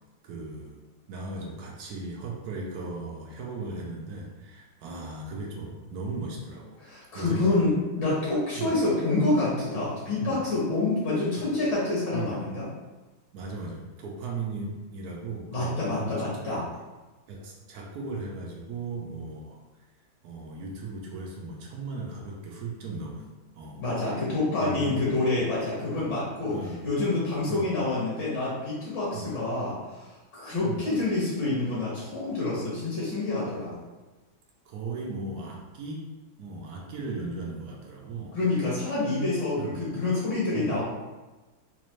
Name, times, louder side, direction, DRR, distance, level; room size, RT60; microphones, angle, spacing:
voice 1, 0.2-0.8 1.1-6.8 7.1-7.6 8.6-8.7 10.0-10.4 12.1-12.4 13.3-16.4 17.3-19.6 20.2-23.3 23.5-23.8 24.6-25.1 25.9-26.1 26.5-26.8 27.5-27.7 29.1-29.3 30.6-30.8 34.7-36.1 36.4-38.4 39.6-39.8 40.5-40.7, right 3 dB, 65° right, -1 dB, 0.9 m, -37 dB
voice 2, 6.8-12.7 15.5-16.7 23.8-33.7 38.3-40.8, left 2 dB, 65° left, -8 dB, 1.9 m, -27 dB
4.1 x 2.6 x 3.1 m, 1.2 s
omnidirectional pair, 2.1 m